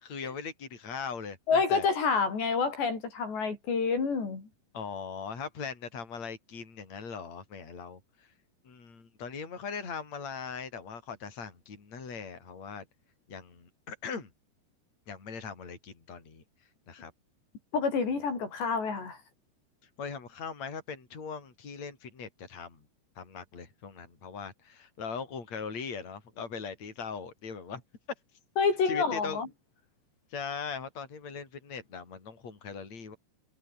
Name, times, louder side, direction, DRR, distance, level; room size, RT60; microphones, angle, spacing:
voice 1, 0.0-1.9 4.7-8.3 8.6-12.9 13.3-14.3 15.1-16.4 16.9-17.1 20.0-22.8 23.2-27.8 28.9-29.4 30.3-33.2, left 5 dB, 40° left, 6.6 m, -40 dB
voice 2, 1.5-4.5 17.7-19.2 28.6-29.5, left 5 dB, 75° left, 8.5 m, -28 dB
omnidirectional pair, 5.0 m